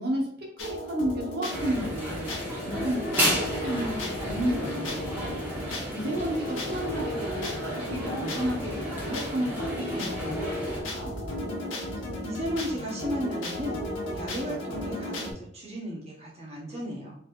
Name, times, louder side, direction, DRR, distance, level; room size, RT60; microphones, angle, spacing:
voice 1, 0.0-2.3 2.6-5.4 5.9-10.6 10.9-11.1, right 1 dB, 55° right, -3 dB, 1.0 m, -32 dB
sound 1, 0.6-15.3, left 1 dB, 75° left, 1.1 m, -34 dB
sound 2, 1.5-10.8, equal, 10° right, 1.4 m, -33 dB
voice 2, 12.2-13.8 14.1-17.1, equal, 35° right, -4 dB, 1.1 m, -34 dB
4.5 x 3.4 x 2.5 m, 0.64 s
head